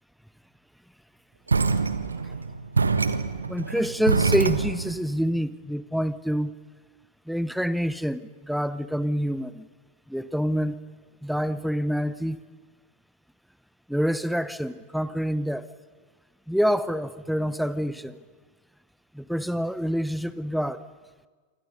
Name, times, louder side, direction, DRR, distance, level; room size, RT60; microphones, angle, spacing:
sound 1, 1.5-5.0, right 4 dB, 75° right, 1.2 m, -25 dB
voice 1, 3.5-6.5 7.3-9.7 10.1-10.8 11.2-12.4 13.9-15.7 16.5-18.2 19.1-20.8, equal, ahead, 1.0 m, -27 dB
27.5 x 25.0 x 5.5 m
figure-of-eight pair, 90°, 0 cm